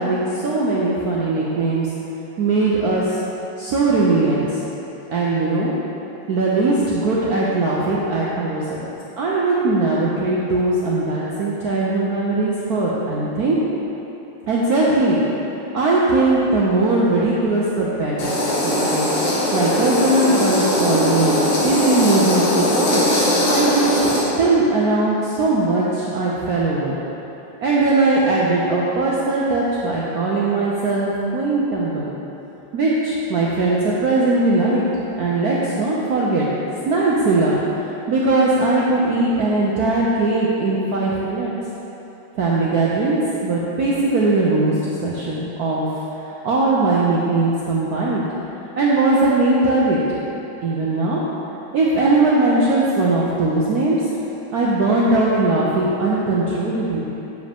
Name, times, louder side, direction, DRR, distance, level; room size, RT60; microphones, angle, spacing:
voice 1, 0.0-1.9 2.4-3.2 3.6-4.5 5.1-5.7 6.3-8.8 9.2-13.6 14.5-15.2 15.7-18.4 18.6-19.0 19.3-23.0 23.5-23.9 24.4-26.9 27.6-32.1 32.7-34.8 35.2-36.5 36.8-37.6 38.1-41.5 42.4-44.7 45.0-45.8 46.4-48.2 48.8-50.0 50.6-51.2 51.7-54.0 54.5-57.0, right 2 dB, 65° right, -5 dB, 0.9 m, -19 dB
sound 1, 18.2-24.2, left 1 dB, 80° left, 2.3 m, -20 dB
7.8 x 7.5 x 3.5 m, 3.0 s
omnidirectional pair, 2.4 m